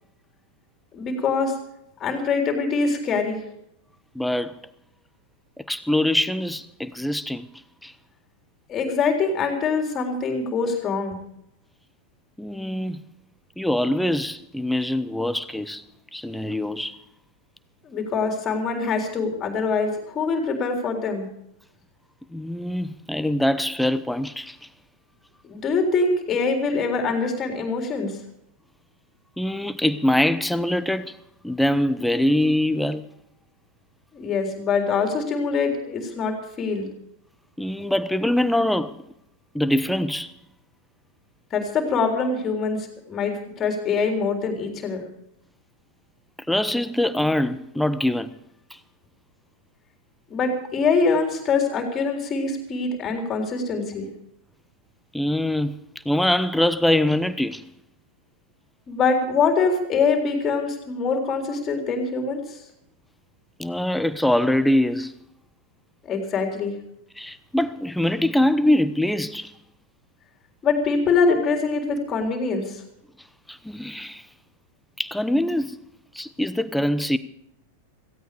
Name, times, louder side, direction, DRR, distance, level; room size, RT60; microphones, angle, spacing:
voice 1, 0.9-1.5 2.0-3.4 8.7-11.2 17.8-21.3 25.4-28.1 34.1-36.9 41.5-45.0 50.3-54.1 58.9-62.6 66.1-66.7 70.6-72.8, left 4 dB, 25° left, 3.9 m, -24 dB
voice 2, 4.1-4.6 5.6-7.5 7.8-7.9 12.4-13.0 13.6-15.8 16.1-17.0 22.3-24.6 29.4-31.2 31.4-33.1 37.6-39.0 39.5-40.3 46.5-48.3 48.7-48.8 55.1-55.8 56.0-57.7 63.6-65.1 67.2-69.5 73.5-74.2 75.0-75.8 76.1-77.2, left 1 dB, ahead, 0.9 m, -23 dB
17.5 x 16.0 x 5.1 m
figure-of-eight pair, 90°, 0 cm